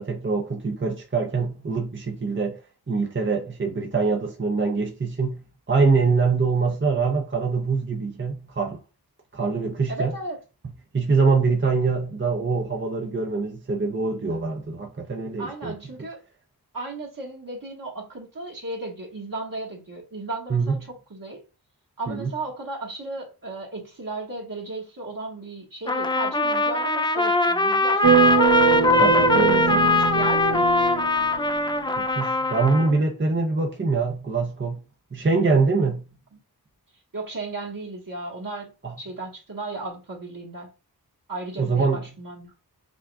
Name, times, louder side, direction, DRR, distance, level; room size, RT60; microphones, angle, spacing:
voice 1, 0.0-2.6 2.9-8.8 9.3-10.2 10.6-15.8 20.5-20.9 22.1-22.3 28.7-29.9 32.0-34.8 35.1-36.1 38.8-39.0 41.6-42.1, right 4 dB, 30° right, 0.7 m, -24 dB
voice 2, 9.9-10.4 15.4-16.2 16.7-21.4 22.0-28.2 28.6-29.0 29.6-30.7 31.0-31.3 36.3-36.4 37.1-38.7 39.0-40.7 41.3-42.5, right 2 dB, 55° right, 1.5 m, -35 dB
Trumpet, 25.9-33.0, left 2 dB, 15° left, 0.3 m, -21 dB
sound 1, 28.0-31.8, right 6 dB, 85° right, 0.9 m, -22 dB
5.9 x 2.4 x 2.3 m
wide cardioid pair, 50°, 39 cm